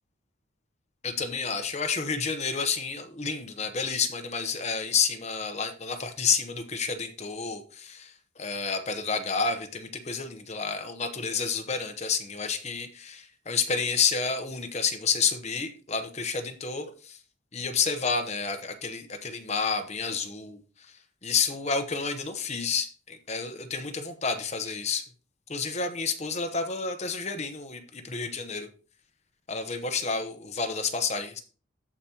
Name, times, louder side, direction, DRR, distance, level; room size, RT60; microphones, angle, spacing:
voice 1, 1.0-17.2 17.5-20.6 21.2-25.0 25.5-28.7 29.5-31.4, left 5 dB, 30° left, 7 dB, 0.9 m, -30 dB
14.5 x 5.1 x 2.9 m, 0.38 s
head